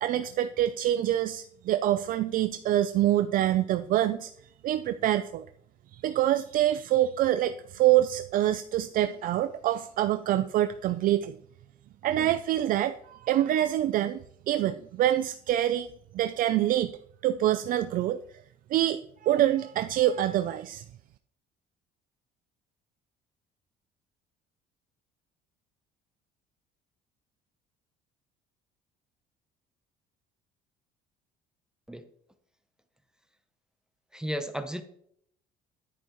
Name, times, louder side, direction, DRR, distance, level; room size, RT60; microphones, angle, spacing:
voice 1, 0.0-4.3 4.6-5.5 5.9-11.4 12.0-15.9 16.1-17.0 17.2-18.2 18.7-20.8, right 12 dB, 50° right, 10 dB, 0.5 m, -26 dB
voice 2, 34.1-34.8, equal, 5° right, 8 dB, 0.8 m, -33 dB
10.5 x 10.0 x 3.1 m, 0.67 s
cardioid pair, 140°, 18 cm